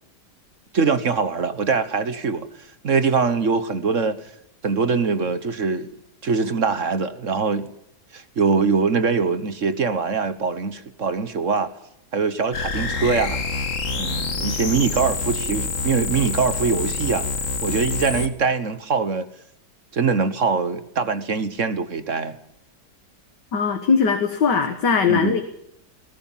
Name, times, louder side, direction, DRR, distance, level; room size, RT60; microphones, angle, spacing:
voice 1, 0.7-2.5 2.8-4.2 4.6-5.9 6.2-7.7 8.1-11.7 12.1-13.4 13.9-17.3 17.6-19.3 19.9-22.4 25.1-25.4, right 5 dB, 50° right, 1.4 m, -23 dB
sound 1, 12.5-18.3, left 4 dB, 50° left, 2.1 m, -26 dB
voice 2, 23.5-25.4, left 5 dB, 85° left, 2.3 m, -20 dB
20.5 x 18.0 x 7.3 m
omnidirectional pair, 1.8 m